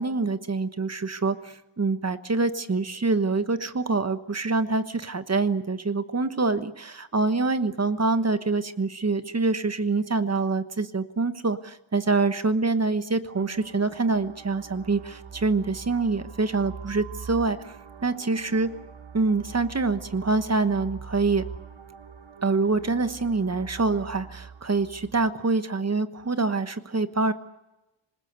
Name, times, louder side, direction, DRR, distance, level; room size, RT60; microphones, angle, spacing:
voice 1, 0.0-17.8 18.0-18.7 19.1-21.5 22.4-27.3, right 3 dB, 30° right, 11 dB, 1.2 m, -25 dB
sound 1, 13.3-25.3, right 6 dB, 90° right, 2.4 m, -43 dB
26.5 x 20.5 x 8.2 m, 0.95 s
wide cardioid pair, 145°, 47 cm